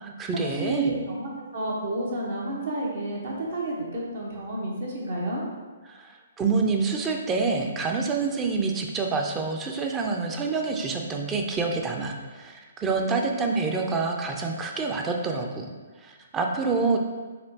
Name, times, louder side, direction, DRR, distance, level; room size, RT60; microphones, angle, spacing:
voice 1, 0.0-1.0 5.9-15.7 16.0-17.0, right 4 dB, 15° right, 2 dB, 0.4 m, -27 dB
voice 2, 0.6-5.4, right 1 dB, 60° right, -3 dB, 1.1 m, -30 dB
4.2 x 2.9 x 2.8 m, 1.4 s
hypercardioid pair, 135°, 0 cm